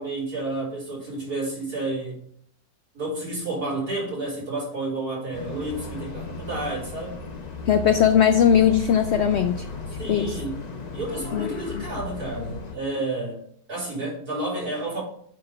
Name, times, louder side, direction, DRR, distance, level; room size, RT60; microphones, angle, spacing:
voice 1, 0.0-2.2 2.9-7.2 10.0-10.5 10.9-13.4 13.7-15.0, right 2 dB, 75° right, -6 dB, 4.3 m, -30 dB
sound 1, 5.3-12.8, left 4 dB, 35° left, 0.7 m, -35 dB
voice 2, 7.7-9.7 10.1-10.4 11.3-11.5 11.7-11.9, left 8 dB, 75° left, 9 dB, 0.6 m, -19 dB
8.6 x 3.9 x 5.4 m, 0.65 s
omnidirectional pair, 1.7 m